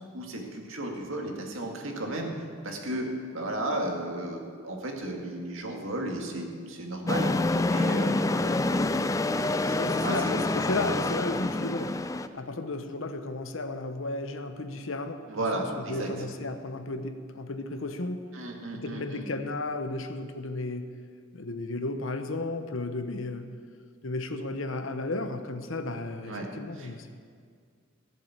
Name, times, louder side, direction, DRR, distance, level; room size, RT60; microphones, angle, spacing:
voice 1, 0.1-2.3 2.6-3.1 3.3-8.6 9.6-10.5 15.3-16.1 18.3-19.3 26.2-26.5 26.8-27.1, right 1 dB, 70° right, 1 dB, 2.1 m, -34 dB
sound 1, 7.1-12.3, left 2 dB, 15° left, 0.4 m, -27 dB
voice 2, 9.8-12.0 12.3-18.3 18.7-20.9 21.3-23.5 24.0-27.1, left 2 dB, 65° left, 7 dB, 1.0 m, -34 dB
15.5 x 7.5 x 8.2 m, 2.1 s
head